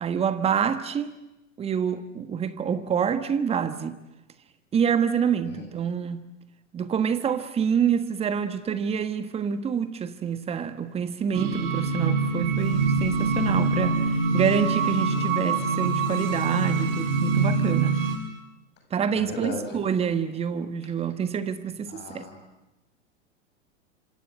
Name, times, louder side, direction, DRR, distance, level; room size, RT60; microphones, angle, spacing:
voice 1, 0.0-1.1 1.6-4.0 4.7-6.2 6.7-14.0 14.3-18.0 18.9-22.3, right 7 dB, 15° right, 1.4 m, -27 dB
sound 1, 11.3-18.2, right 4 dB, 45° right, 5.9 m, -24 dB
voice 2, 19.2-19.8 21.9-22.4, left 3 dB, 30° left, 7.3 m, -36 dB
26.5 x 26.5 x 8.1 m
figure-of-eight pair, 95°, 38 cm